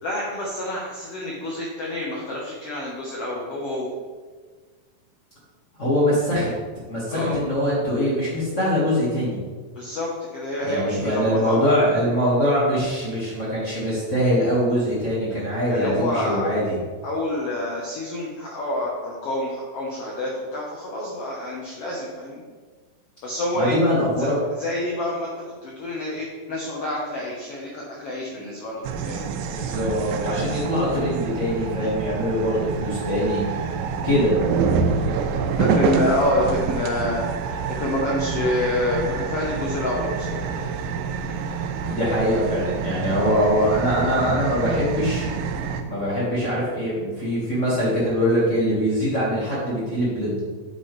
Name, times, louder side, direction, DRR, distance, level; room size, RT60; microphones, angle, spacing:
voice 1, 0.0-3.9 7.1-7.4 9.7-11.6 15.7-16.4 17.0-22.4 23.2-23.8 24.2-24.3 24.6-25.3 25.6-29.3 31.8-31.9 35.6-40.4, left 1 dB, 75° left, -3 dB, 1.4 m, -27 dB
voice 2, 5.8-6.5 6.9-9.4 10.6-16.8 23.5-24.4 29.4-33.4 34.0-34.4 41.8-45.3 45.8-50.4, equal, 45° left, -8 dB, 1.0 m, -23 dB
sound 1, 28.8-45.8, right 5 dB, 90° right, 2.4 m, -27 dB
8.2 x 6.2 x 3.2 m, 1.5 s
omnidirectional pair, 4.0 m